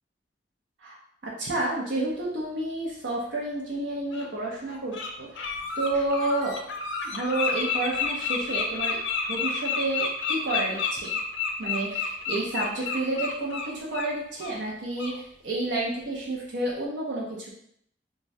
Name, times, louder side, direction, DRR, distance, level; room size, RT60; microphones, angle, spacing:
voice 1, 1.2-6.6 7.0-9.0 9.3-11.1 11.6-17.5, right 2 dB, 75° right, -4 dB, 0.6 m, -30 dB
Bird, 3.3-3.4 4.1-4.3 4.7-5.1 5.3-14.1 14.4-14.6 15.0-15.1, left 5 dB, 90° left, 0.5 m, -30 dB
2.6 x 2.2 x 3.1 m, 0.68 s
head